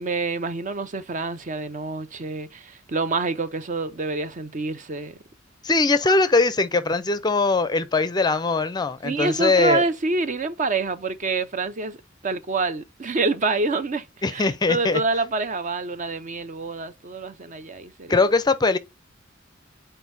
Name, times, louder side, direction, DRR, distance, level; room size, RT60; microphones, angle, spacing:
voice 1, 0.0-5.2 6.1-6.2 9.0-12.0 12.2-14.0 14.3-18.2, right 3 dB, 40° right, 0.6 m, -27 dB
voice 2, 5.6-9.8 14.2-15.0 18.1-18.8, left 3 dB, 20° left, 0.5 m, -21 dB
8.2 x 4.4 x 2.6 m
head